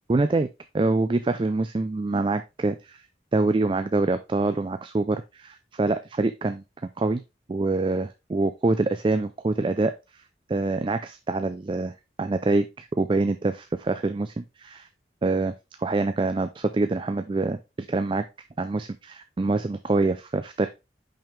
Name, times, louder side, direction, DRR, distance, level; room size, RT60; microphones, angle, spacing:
voice 1, 0.1-0.5 0.7-3.0 3.3-6.6 7.0-7.2 7.5-9.9 10.5-14.9 15.2-15.5 15.8-17.6 17.9-18.3 18.6-20.7, right 3 dB, 30° right, 9 dB, 0.3 m, -25 dB
5.6 x 5.3 x 3.3 m, 0.25 s
head